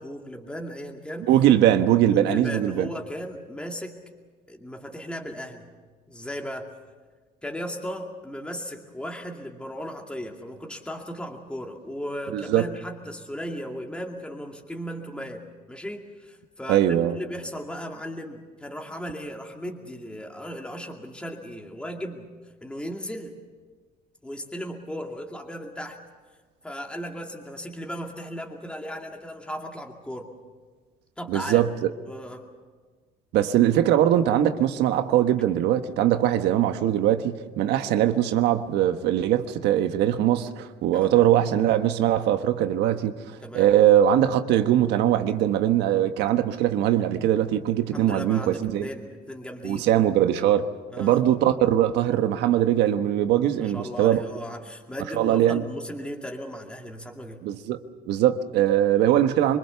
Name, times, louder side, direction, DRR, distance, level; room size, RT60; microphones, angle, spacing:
voice 1, 0.0-1.3 2.1-4.0 4.5-5.7 6.1-6.7 7.4-22.3 22.6-23.3 24.2-26.0 26.6-30.3 31.2-31.6 32.1-32.5 40.9-41.3 43.4-43.7 47.9-49.9 50.9-51.2 53.5-57.4, equal, 5° left, 2.4 m, -36 dB
voice 2, 1.3-2.9 12.3-12.7 16.7-17.2 31.3-31.9 33.3-43.1 43.5-48.9 49.6-50.7 51.0-54.2 55.2-55.6 57.4-57.8 58.1-59.6, right 11 dB, 85° right, 1.3 m, -21 dB
25.0 x 22.5 x 7.0 m
cardioid pair, 110°, 17 cm